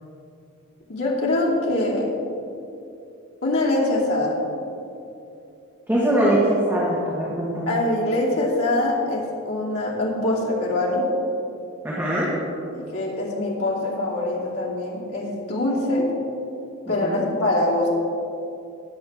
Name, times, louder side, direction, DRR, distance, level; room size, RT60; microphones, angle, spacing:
voice 1, 0.9-2.1 3.4-4.5 7.7-11.1 12.7-16.1 16.9-17.9, left 2 dB, 85° left, -4 dB, 2.8 m, -23 dB
voice 2, 5.9-7.7 11.8-12.3 17.0-17.2, right 1 dB, 10° right, -7 dB, 1.6 m, -22 dB
19.0 x 7.8 x 3.6 m, 2.7 s
head